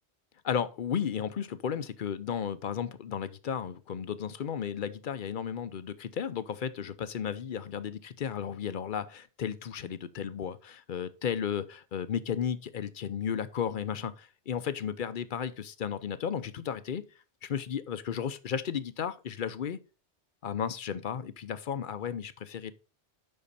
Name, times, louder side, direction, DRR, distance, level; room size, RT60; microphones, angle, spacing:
voice 1, 0.4-17.0 17.4-19.8 20.4-22.7, left 8 dB, 55° left, 0.7 m, -34 dB
8.6 x 5.7 x 4.0 m
omnidirectional pair, 1.2 m